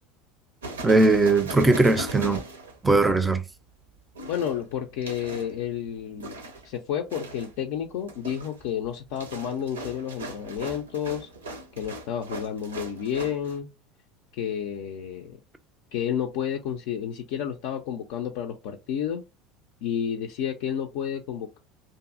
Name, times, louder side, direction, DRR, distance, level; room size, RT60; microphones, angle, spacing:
sound 1, 0.6-3.3 4.2-5.5 6.2-6.8 7.1-7.6 8.0-13.6, right 2 dB, 75° right, 0.6 m, -39 dB
voice 1, 0.8-2.4 2.8-3.4, right 3 dB, 15° right, 0.5 m, -19 dB
voice 2, 4.3-6.3 6.6-11.3 11.8-13.7 14.3-15.4 15.9-19.2 19.8-21.6, left 9 dB, 60° left, 0.4 m, -31 dB
2.6 x 2.5 x 2.4 m
figure-of-eight pair, 70°, 0 cm